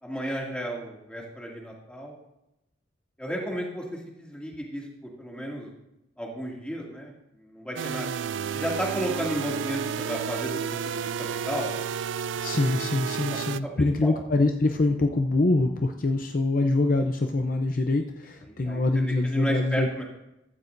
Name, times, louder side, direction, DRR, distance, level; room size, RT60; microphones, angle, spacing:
voice 1, 0.0-2.1 3.2-5.7 6.2-8.1 8.5-10.5 10.8-11.7 13.8-14.2 18.5-18.8 19.2-20.0, equal, 5° left, -2 dB, 2.3 m, -33 dB
sound 1, 7.8-13.6, right 7 dB, 75° right, 0.4 m, -31 dB
voice 2, 12.4-20.0, left 2 dB, 45° left, 4 dB, 0.6 m, -24 dB
15.0 x 13.0 x 2.6 m, 0.89 s
head